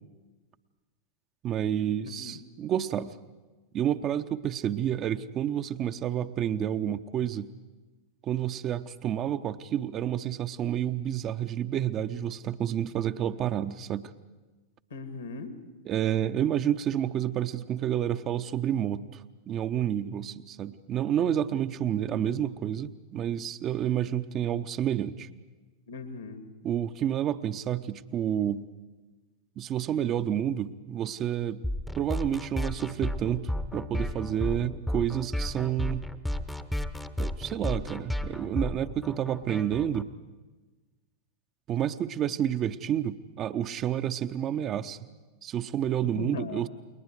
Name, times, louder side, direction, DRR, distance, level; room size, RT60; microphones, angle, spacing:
voice 1, 1.4-3.1 3.7-7.5 8.2-14.1 15.9-19.2 19.5-25.3 26.6-28.7 29.6-31.6 32.0-36.1 37.2-40.1 41.7-45.0 45.4-46.7, right 10 dB, 30° right, 10 dB, 0.7 m, -29 dB
voice 2, 2.1-2.4 14.9-15.5 25.9-26.4 46.0-46.7, left 4 dB, 70° left, 9 dB, 2.2 m, -39 dB
sound 1, 31.6-40.0, left 1 dB, 5° left, 0.8 m, -33 dB
29.5 x 22.0 x 4.8 m, 1.3 s
figure-of-eight pair, 90°, 0 cm